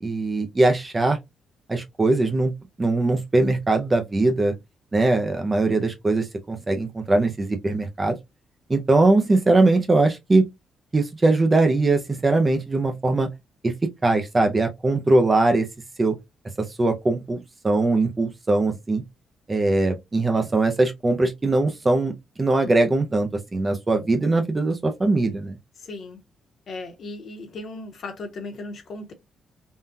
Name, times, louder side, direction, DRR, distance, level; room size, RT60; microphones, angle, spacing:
voice 1, 0.0-1.2 1.7-2.5 2.8-4.5 4.9-8.2 8.7-10.5 10.9-13.3 13.6-13.7 14.0-15.7 16.0-16.2 16.6-19.0 19.5-25.6, right 2 dB, 15° right, 0.4 m, -21 dB
voice 2, 25.8-26.2 26.7-29.1, left 2 dB, 45° left, 0.9 m, -36 dB
3.6 x 2.2 x 2.6 m
cardioid pair, 175°, 0 cm